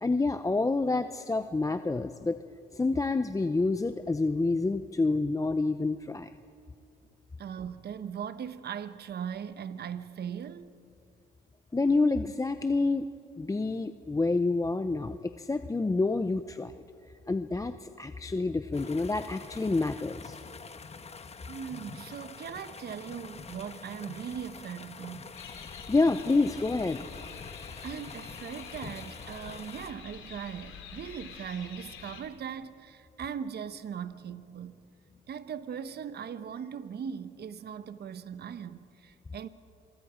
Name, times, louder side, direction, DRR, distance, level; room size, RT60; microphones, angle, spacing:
voice 1, 0.0-2.4 2.7-6.3 11.7-13.1 13.4-16.7 17.3-20.4 25.9-27.1, left 3 dB, 15° left, 0.7 m, -28 dB
voice 2, 7.4-10.7 21.5-25.4 27.8-34.8 35.3-39.5, right 8 dB, 55° right, 1.0 m, -39 dB
sound 1, 18.7-29.9, left 5 dB, 30° left, 1.2 m, -46 dB
sound 2, 25.3-32.2, left 7 dB, 85° left, 2.7 m, -47 dB
27.0 x 23.5 x 5.1 m
cardioid pair, 90°, 20 cm